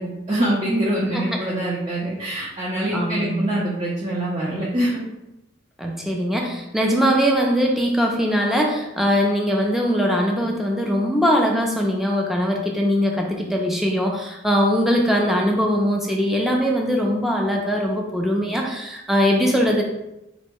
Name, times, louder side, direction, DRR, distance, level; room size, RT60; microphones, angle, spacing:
voice 1, 0.0-5.0, right 1 dB, 30° right, -7 dB, 0.8 m, -24 dB
voice 2, 2.9-3.4 5.8-19.8, equal, ahead, -1 dB, 0.4 m, -21 dB
4.1 x 2.1 x 4.5 m, 0.91 s
head